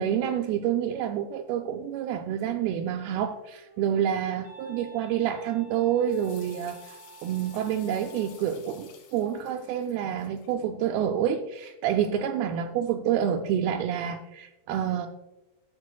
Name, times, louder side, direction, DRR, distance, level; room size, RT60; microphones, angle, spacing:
voice 1, 0.0-15.1, right 9 dB, 85° right, 3 dB, 2.4 m, -28 dB
Wind instrument woodwind instrument, 3.4-8.5, right 2 dB, 50° left, 2.0 m, -51 dB
sound 1, 6.1-10.5, left 6 dB, 75° left, 3.3 m, -53 dB
12.5 x 7.1 x 2.2 m, 1.0 s
omnidirectional pair, 4.5 m